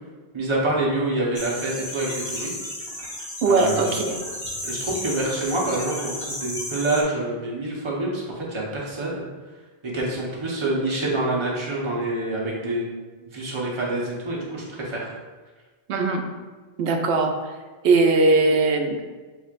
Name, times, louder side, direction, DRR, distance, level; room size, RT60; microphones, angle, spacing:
voice 1, 0.3-2.6 3.5-4.0 4.6-9.2 9.8-12.8 13.2-15.1, right 2 dB, 30° right, -4 dB, 0.9 m, -27 dB
Radio Interference, 1.3-7.0, left 1 dB, 30° left, 1.0 m, -33 dB
voice 2, 3.4-4.2 15.9-16.2 16.8-17.3 17.8-19.1, right 3 dB, 90° right, 3 dB, 0.9 m, -20 dB
6.2 x 3.2 x 2.4 m, 1.3 s
omnidirectional pair, 1.1 m